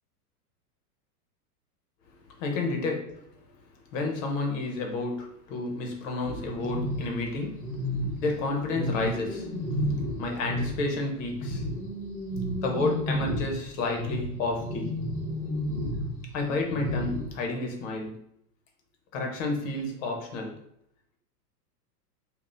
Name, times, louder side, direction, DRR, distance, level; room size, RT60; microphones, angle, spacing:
voice 1, 2.3-3.5 3.9-7.9 8.2-11.7 12.6-15.0 16.3-18.2 19.1-20.6, left 2 dB, 55° left, 2 dB, 1.1 m, -31 dB
sound 1, 6.2-10.9 11.2-17.3, equal, 25° left, 1.5 m, -32 dB
5.1 x 2.5 x 2.6 m, 0.73 s
hypercardioid pair, 130°, 48 cm